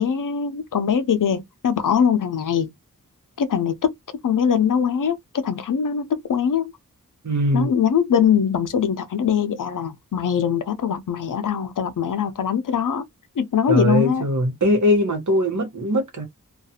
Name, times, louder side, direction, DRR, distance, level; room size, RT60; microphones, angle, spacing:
voice 1, 0.0-2.7 3.4-3.9 4.2-6.7 7.5-13.0 13.4-14.2, left 8 dB, 70° left, 0.5 m, -22 dB
voice 2, 7.2-7.7 13.7-16.2, equal, 60° right, 1.0 m, -21 dB
2.3 x 2.3 x 2.7 m
wide cardioid pair, 45°, 33 cm